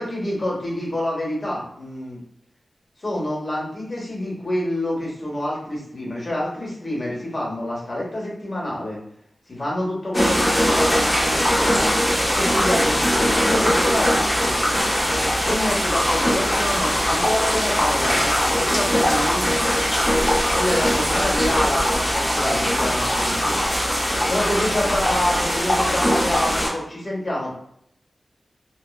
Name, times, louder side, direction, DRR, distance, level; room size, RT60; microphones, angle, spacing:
voice 1, 0.0-2.2 3.0-9.0 9.5-11.9 12.3-14.6 15.4-19.6 20.5-23.6 24.3-27.5, left 1 dB, 45° left, -4 dB, 1.1 m, -27 dB
sound 1, 10.1-26.7, equal, 20° left, 0.8 m, -21 dB
2.8 x 2.1 x 2.3 m, 0.72 s
wide cardioid pair, 75°, 0 cm